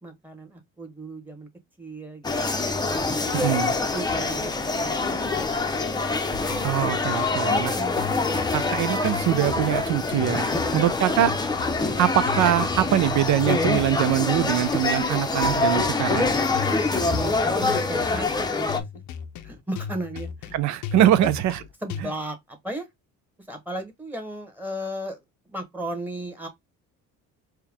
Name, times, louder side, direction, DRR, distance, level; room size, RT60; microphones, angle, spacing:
voice 1, 0.0-1.5 1.8-2.8 3.1-5.8 7.4-8.8 10.5-10.8 16.9-18.8 19.4-20.5 21.2-21.3 21.8-22.9 23.5-26.5, right 1 dB, 5° right, 1.2 m, -35 dB
sound 1, 2.2-18.8, left 3 dB, 15° left, 0.7 m, -25 dB
sound 2, 6.5-22.0, left 7 dB, 65° left, 0.7 m, -37 dB
voice 2, 6.6-7.7 8.5-10.5 10.7-11.3 12.0-16.3 20.5-21.6, right 12 dB, 65° right, 0.7 m, -23 dB
4.5 x 2.3 x 3.5 m
cardioid pair, 105°, 31 cm